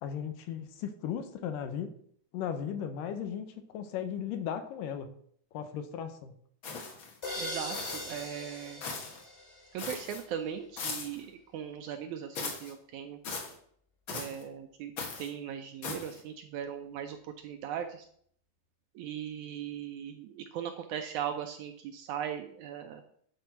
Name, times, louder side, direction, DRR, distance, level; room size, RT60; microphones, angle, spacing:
voice 1, 0.0-1.9 2.3-5.1 5.5-6.3, left 8 dB, 80° left, 8 dB, 2.4 m, -36 dB
sound 1, 6.6-7.2 7.7-8.3 8.8-9.2 9.8-10.2 10.8-11.2 12.3-12.7 13.2-13.5 14.1-14.4 15.0-15.3 15.8-16.2, left 4 dB, 50° left, 1.6 m, -39 dB
sound 2, 7.2-10.1, left 1 dB, 25° left, 1.8 m, -41 dB
voice 2, 7.4-8.8 9.7-13.2 14.1-18.1 19.0-23.0, right 9 dB, 80° right, 7 dB, 1.8 m, -39 dB
10.5 x 4.6 x 5.8 m, 0.64 s
omnidirectional pair, 3.9 m